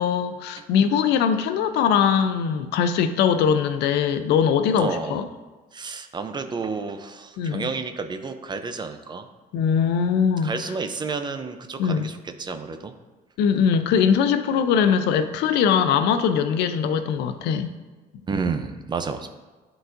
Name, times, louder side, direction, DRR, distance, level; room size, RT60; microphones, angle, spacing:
voice 1, 0.0-5.2 7.4-7.7 9.5-10.5 11.8-12.1 13.4-17.7, left 7 dB, 80° left, 10 dB, 0.5 m, -21 dB
voice 2, 4.8-5.2 5.7-9.3 10.4-12.9 18.3-19.3, right 4 dB, 25° right, 8 dB, 0.5 m, -30 dB
10.5 x 4.0 x 2.6 m, 1.3 s
cardioid pair, 110°, 17 cm